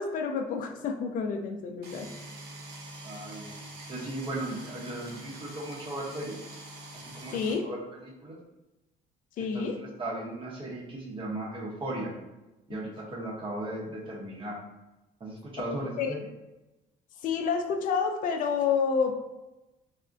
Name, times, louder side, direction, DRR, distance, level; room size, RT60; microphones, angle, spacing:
voice 1, 0.0-2.1 7.3-7.6 9.4-9.8 12.7-12.8 15.8-16.2 17.2-19.2, left 5 dB, 55° left, 4 dB, 0.4 m, -29 dB
sound 1, 1.8-7.5, right 1 dB, 70° right, 0.7 m, -45 dB
voice 2, 3.0-3.6 3.9-6.4 6.9-7.8 8.2-8.4 9.4-12.1 12.7-14.6 15.2-16.2, right 1 dB, 30° right, -4 dB, 0.7 m, -37 dB
3.5 x 2.1 x 2.5 m, 1.0 s
cardioid pair, 110°, 17 cm